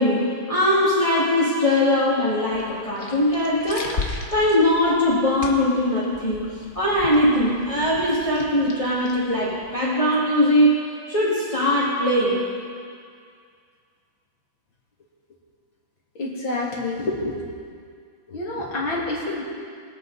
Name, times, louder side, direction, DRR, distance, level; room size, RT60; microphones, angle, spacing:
voice 1, 0.0-6.4 6.7-10.7 11.1-12.4, left 1 dB, 15° left, -9 dB, 2.2 m, -21 dB
sound 1, 2.4-9.8, left 4 dB, 40° left, 1.3 m, -37 dB
voice 2, 16.2-17.4 18.3-19.4, left 2 dB, 75° left, -4 dB, 3.4 m, -27 dB
24.0 x 8.6 x 4.1 m, 2.2 s
omnidirectional pair, 2.2 m